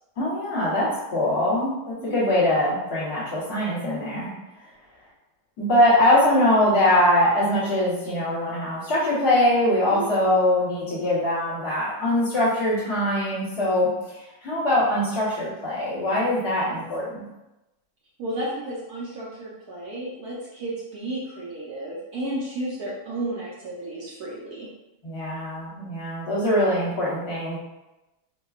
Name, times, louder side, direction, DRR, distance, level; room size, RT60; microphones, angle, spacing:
voice 1, 0.2-4.3 5.6-17.2 25.0-27.6, left 1 dB, 50° left, -10 dB, 1.5 m, -22 dB
voice 2, 2.0-2.3 9.9-10.2 18.2-24.7, right 1 dB, 65° right, -6 dB, 0.9 m, -33 dB
4.5 x 2.3 x 2.4 m, 0.98 s
omnidirectional pair, 2.4 m